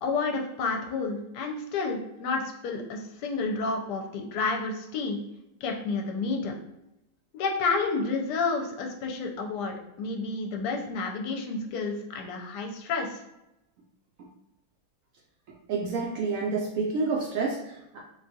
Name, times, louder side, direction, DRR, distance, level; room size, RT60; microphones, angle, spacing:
voice 1, 0.0-5.2 5.6-6.5 7.3-13.2, left 4 dB, 75° left, 2 dB, 1.1 m, -30 dB
voice 2, 15.7-18.0, right 4 dB, 75° right, -2 dB, 0.7 m, -29 dB
3.8 x 2.3 x 2.6 m, 0.90 s
omnidirectional pair, 1.9 m